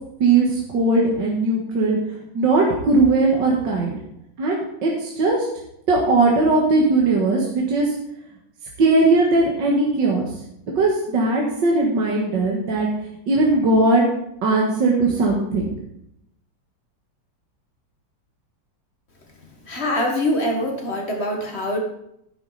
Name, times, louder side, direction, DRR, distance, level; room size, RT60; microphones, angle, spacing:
voice 1, 0.2-2.0 2.3-4.0 4.4-5.5 5.9-7.9 8.8-10.3 10.8-12.9 13.3-14.1 14.4-15.7, right 3 dB, 70° right, -2 dB, 2.2 m, -19 dB
voice 2, 19.7-21.8, left 1 dB, 35° left, 2 dB, 1.9 m, -24 dB
11.0 x 8.9 x 4.1 m, 0.77 s
omnidirectional pair, 2.0 m